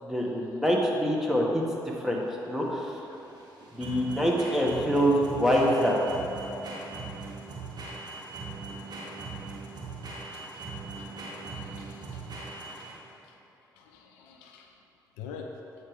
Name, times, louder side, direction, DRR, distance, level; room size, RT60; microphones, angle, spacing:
voice 1, 0.0-3.0 3.7-6.0, equal, 5° right, -3 dB, 1.8 m, -25 dB
sound 1, 1.6-13.2, right 3 dB, 45° right, 1.5 m, -40 dB
voice 2, 11.8-12.2 12.8-12.9 13.8-14.7 15.2-15.5, left 7 dB, 75° left, 2 dB, 0.6 m, -45 dB
8.5 x 4.8 x 5.4 m, 2.9 s
figure-of-eight pair, 40°, 10 cm